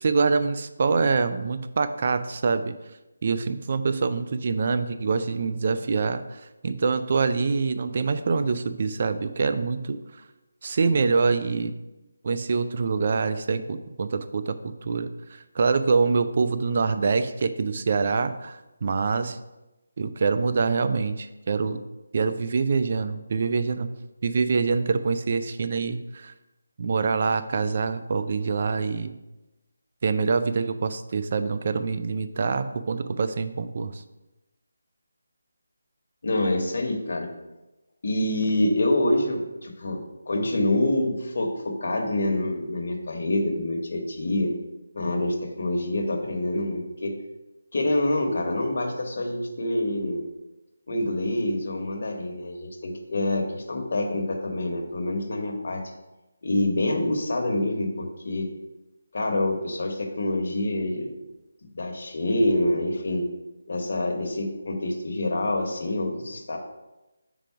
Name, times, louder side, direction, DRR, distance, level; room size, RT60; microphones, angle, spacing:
voice 1, 0.0-2.7 3.2-10.0 10.6-11.7 12.2-15.1 15.6-19.4 20.0-21.8 22.1-23.9 24.2-26.3 26.8-29.2 30.0-34.0, right 4 dB, 40° right, 10 dB, 0.3 m, -25 dB
voice 2, 36.2-37.3 38.0-40.0 40.3-44.5 44.9-47.2 47.7-50.2 50.9-55.8 56.4-58.5 59.1-61.1 61.7-63.2 63.7-66.6, left 1 dB, 55° left, 2 dB, 1.1 m, -26 dB
4.6 x 3.8 x 5.6 m, 1.0 s
figure-of-eight pair, 170°, 0 cm